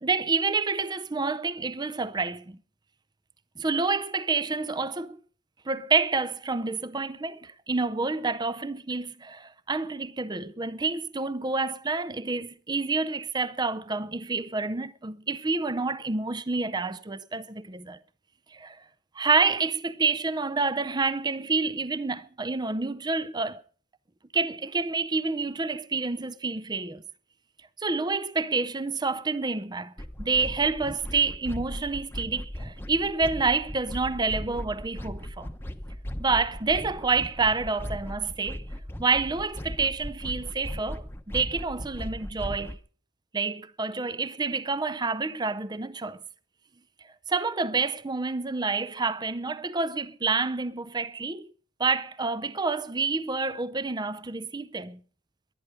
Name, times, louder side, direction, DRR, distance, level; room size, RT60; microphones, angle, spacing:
voice 1, 0.0-2.6 3.6-5.2 5.7-18.0 18.5-18.8 19.2-23.6 24.3-27.0 27.8-29.9 30.2-35.5 36.2-38.6 39.0-41.1 41.3-42.8 43.3-46.2 47.3-51.5 51.8-55.0, right 4 dB, 20° right, 0.6 m, -28 dB
sound 1, 30.0-42.8, equal, 10° left, 1.0 m, -37 dB
22.5 x 9.7 x 5.1 m
head